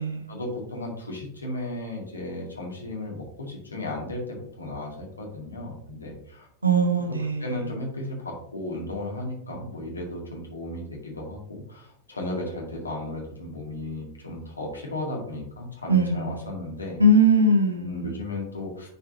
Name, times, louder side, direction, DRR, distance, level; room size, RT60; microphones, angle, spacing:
voice 1, 0.3-6.5 7.1-17.0 17.8-18.9, left 1 dB, 80° left, -1 dB, 2.2 m, -35 dB
voice 2, 6.6-7.6 15.9-16.5 17.0-18.1, right 1 dB, 80° right, 5 dB, 1.2 m, -21 dB
9.9 x 4.6 x 2.8 m, 0.69 s
figure-of-eight pair, 90°, 0 cm